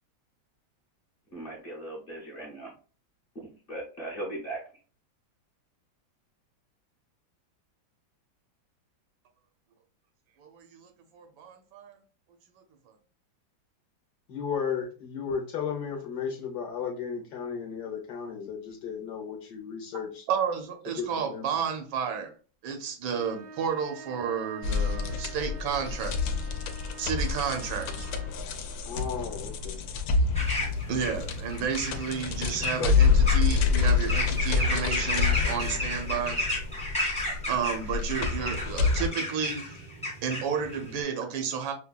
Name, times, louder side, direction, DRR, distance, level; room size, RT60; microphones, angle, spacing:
voice 1, 1.3-2.7 3.3-4.6 32.8-32.9, right 1 dB, 40° left, -2 dB, 0.9 m, -37 dB
voice 2, 10.4-12.0 20.3-22.3 22.6-26.2 27.0-28.1 30.9-36.4 37.5-39.8 40.2-41.7, right 7 dB, 90° right, 5 dB, 1.4 m, -31 dB
voice 3, 14.3-20.2 21.0-21.4 28.8-29.8, left 6 dB, 65° left, -1 dB, 1.1 m, -34 dB
sound 1, 23.1-28.5, right 4 dB, 65° right, 0.9 m, -46 dB
sound 2, 24.6-39.1, left 5 dB, 85° left, 1.3 m, -27 dB
sound 3, 30.3-41.0, left 1 dB, 5° left, 0.5 m, -33 dB
5.6 x 2.2 x 2.2 m, 0.37 s
omnidirectional pair, 2.1 m